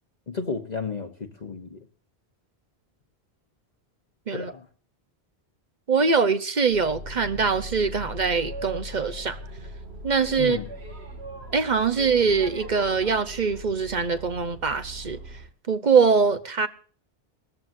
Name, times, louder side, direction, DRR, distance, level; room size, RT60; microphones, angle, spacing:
voice 1, 0.3-1.8 4.3-4.6 10.4-10.7, left 4 dB, 45° left, 1.2 m, -32 dB
voice 2, 5.9-9.4 10.0-10.6 11.5-15.2 15.7-16.7, right 5 dB, 45° right, 1.0 m, -23 dB
Boat Water vehicle, 6.7-15.5, right 1 dB, 80° right, 2.6 m, -39 dB
19.5 x 14.0 x 2.6 m
omnidirectional pair, 1.1 m